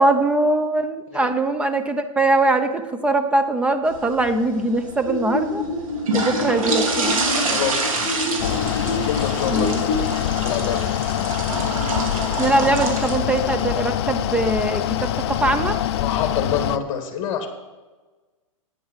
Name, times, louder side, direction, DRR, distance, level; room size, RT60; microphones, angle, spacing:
voice 1, 0.0-5.6 6.1-7.3 9.5-10.1 12.4-15.8, right 2 dB, 5° right, 8 dB, 0.6 m, -21 dB
sound 1, 3.9-16.2, right 2 dB, 80° right, 2.6 m, -28 dB
sound 2, 5.1-10.1, left 2 dB, 50° right, 4.0 m, -28 dB
voice 2, 7.5-8.6 9.0-9.8 10.4-11.3 16.0-17.5, left 8 dB, 35° left, 6 dB, 1.7 m, -27 dB
Mechanical fan, 8.4-16.8, left 12 dB, 50° left, 0.5 m, -24 dB
9.2 x 8.7 x 5.7 m, 1.3 s
hypercardioid pair, 140°, 17 cm